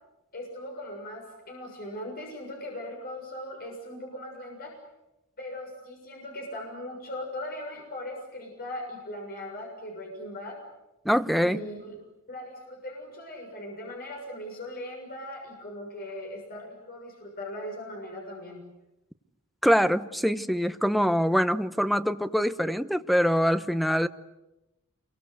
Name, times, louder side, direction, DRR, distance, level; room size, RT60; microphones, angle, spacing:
voice 1, 0.3-4.7 5.4-10.6 11.4-12.0 12.3-18.7, left 1 dB, 45° left, 1 dB, 6.9 m, -39 dB
voice 2, 11.0-11.6 19.6-24.1, equal, ahead, 11 dB, 0.9 m, -24 dB
29.0 x 23.5 x 8.1 m, 0.94 s
head